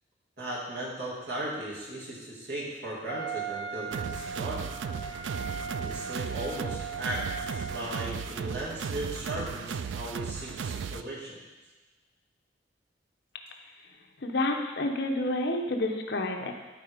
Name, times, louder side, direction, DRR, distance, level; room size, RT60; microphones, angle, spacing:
voice 1, 0.4-4.7 5.8-11.4, right 1 dB, 60° right, -5 dB, 2.6 m, -37 dB
Wind instrument woodwind instrument, 3.1-8.3, right 5 dB, 30° left, 1.1 m, -38 dB
sound 1, 3.9-11.0, right 6 dB, 80° right, 0.4 m, -36 dB
voice 2, 14.2-16.5, left 2 dB, 65° left, 3 dB, 1.0 m, -29 dB
13.0 x 4.4 x 5.1 m, 1.2 s
head